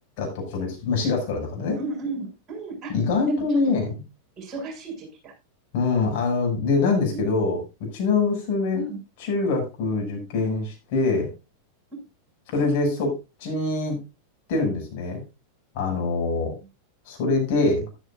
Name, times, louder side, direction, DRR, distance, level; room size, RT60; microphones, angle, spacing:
voice 1, 0.2-1.8 2.9-4.0 5.7-7.6 7.9-8.8 9.2-11.3 12.5-14.0 14.5-15.2 15.7-16.5 17.1-17.8, left 3 dB, 50° left, 1 dB, 6.3 m, -24 dB
voice 2, 1.8-3.0 3.3-3.6 4.4-5.3 7.1-7.2 8.7-9.0, right 3 dB, 25° right, 1 dB, 7.0 m, -34 dB
13.5 x 12.5 x 2.5 m, 0.28 s
figure-of-eight pair, 90°, 0 cm